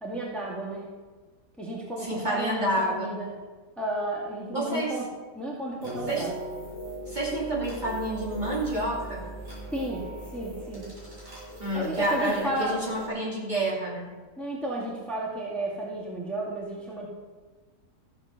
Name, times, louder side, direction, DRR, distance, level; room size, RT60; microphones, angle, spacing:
voice 1, 0.0-1.0 1.6-3.3 3.8-5.1 5.3-6.3 9.7-11.0 11.7-12.8 14.4-17.1, right 1 dB, ahead, -4 dB, 2.0 m, -33 dB
voice 2, 2.0-3.1 4.5-4.9 6.1-6.3 7.1-9.2 11.6-14.1, right 1 dB, 25° right, -5 dB, 2.9 m, -29 dB
sound 1, 5.8-13.1, right 1 dB, 50° right, 4.8 m, -40 dB
14.0 x 8.0 x 6.6 m, 1.4 s
omnidirectional pair, 1.8 m